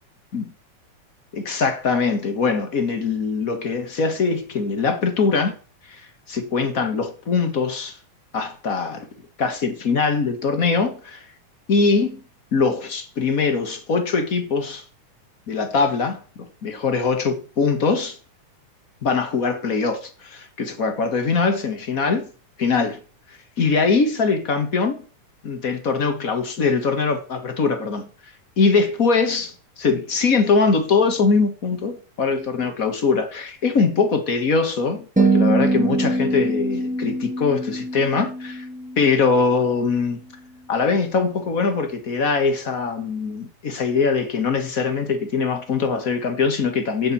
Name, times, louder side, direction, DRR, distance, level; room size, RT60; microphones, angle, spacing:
voice 1, 1.3-5.5 5.9-8.0 8.3-9.1 9.4-11.3 11.7-12.2 12.5-14.8 15.5-16.2 16.6-18.2 19.0-22.3 22.6-23.0 23.3-25.0 25.4-38.7 39.0-40.2 40.7-47.1, left 4 dB, 45° left, 1.1 m, -22 dB
sound 1, 35.2-39.5, right 2 dB, 5° right, 0.8 m, -23 dB
10.0 x 6.1 x 8.4 m
omnidirectional pair, 3.7 m